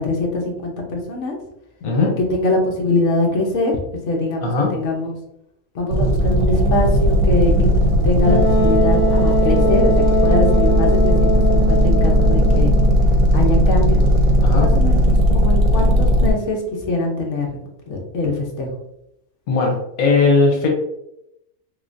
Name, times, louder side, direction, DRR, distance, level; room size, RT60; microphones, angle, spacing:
voice 1, 0.0-1.4 2.2-3.8 4.1-5.2 5.7-7.7 8.0-12.7 13.3-14.0 14.6-17.6 17.9-18.7, left 2 dB, 60° left, 0 dB, 1.1 m, -23 dB
voice 2, 1.8-2.2 4.4-4.7 14.4-14.7 19.5-20.7, left 4 dB, 85° left, 0 dB, 1.3 m, -18 dB
sound 1, 5.9-16.3, equal, 85° right, 1.1 m, -16 dB
Wind instrument woodwind instrument, 8.2-13.0, right 1 dB, 40° right, 1.0 m, -21 dB
3.5 x 3.2 x 2.6 m, 0.83 s
omnidirectional pair, 1.5 m